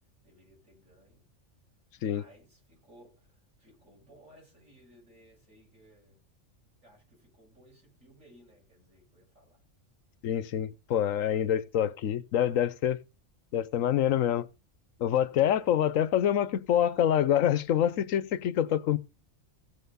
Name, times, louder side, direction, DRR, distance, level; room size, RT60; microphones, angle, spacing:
voice 1, 0.2-1.3 2.0-6.2 6.8-9.6 15.4-15.8, right 1 dB, 90° right, 8.2 m, -59 dB
voice 2, 10.2-13.0 13.5-14.5 15.0-19.0, left 10 dB, 90° left, 1.2 m, -26 dB
16.0 x 5.8 x 5.5 m
omnidirectional pair, 1.3 m